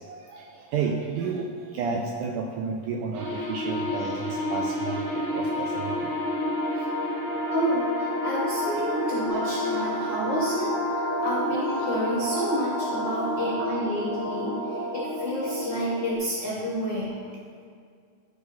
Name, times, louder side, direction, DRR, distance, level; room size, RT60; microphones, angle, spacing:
voice 1, 0.1-0.4 0.7-1.5 1.7-5.0 5.3-6.1, right 5 dB, 80° right, 1 dB, 1.8 m, -31 dB
sound 1, 3.1-16.1, left 1 dB, 60° right, 1.8 m, -29 dB
voice 2, 7.5-10.7 11.2-17.2, equal, 80° left, -5 dB, 1.0 m, -30 dB
11.5 x 4.9 x 4.2 m, 2.2 s
omnidirectional pair, 4.2 m